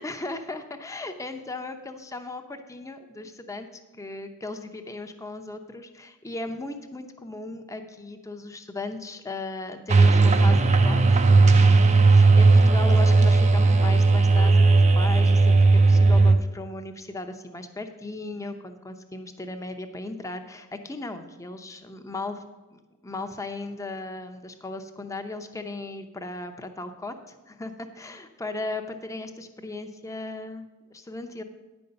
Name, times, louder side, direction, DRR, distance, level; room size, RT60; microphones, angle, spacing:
voice 1, 0.0-22.4 22.7-31.4, left 2 dB, 15° left, 7 dB, 0.7 m, -37 dB
sound 1, 9.9-16.4, right 3 dB, 30° right, 0.5 m, -16 dB
9.8 x 5.3 x 6.8 m, 1.1 s
head